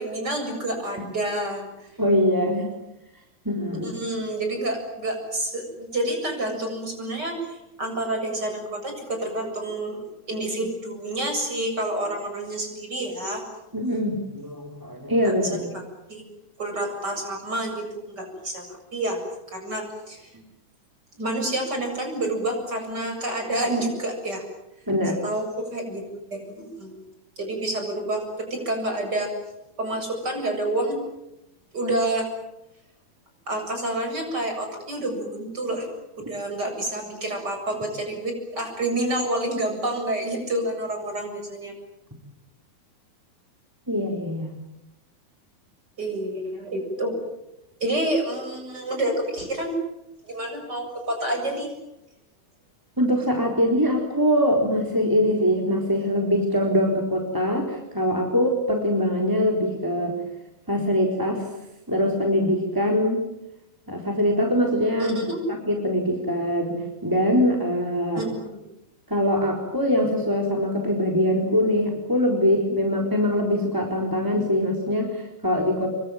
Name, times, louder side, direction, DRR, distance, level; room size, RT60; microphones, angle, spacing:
voice 1, 0.0-1.9 3.7-10.0 10.3-13.4 15.4-15.6 16.1-16.2 16.6-18.7 18.9-19.2 19.5-20.3 21.2-24.4 25.2-26.0 26.3-27.0 27.4-29.3 29.8-31.0 31.7-32.3 33.5-35.9 36.1-41.7 46.0-47.2 47.8-49.8 50.2-51.7 65.0-65.4 68.2-68.6, right 1 dB, 25° right, 4 dB, 8.0 m, -28 dB
voice 2, 2.0-2.7 3.4-3.9 13.7-15.7 20.3-20.4 24.9-25.2 43.9-44.5 53.0-60.2 60.7-61.5 61.9-63.2 63.9-65.2 65.7-68.2 69.1-75.9, equal, 5° right, 1 dB, 3.4 m, -23 dB
27.5 x 23.5 x 9.2 m, 0.89 s
omnidirectional pair, 4.4 m